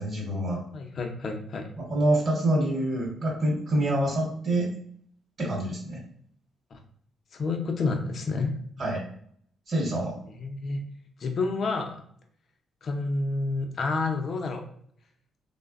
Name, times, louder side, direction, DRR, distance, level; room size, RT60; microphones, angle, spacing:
voice 1, 0.0-0.6 1.9-4.7 5.4-6.0 8.8-9.0 9.7-10.2, right 1 dB, 50° right, -2 dB, 0.9 m, -26 dB
voice 2, 0.7-1.7 6.7-6.8 7.3-8.6 10.3-10.8 11.2-12.0 12.8-14.6, left 3 dB, 50° left, 4 dB, 0.4 m, -29 dB
3.2 x 2.0 x 2.4 m, 0.63 s
cardioid pair, 90°, 0 cm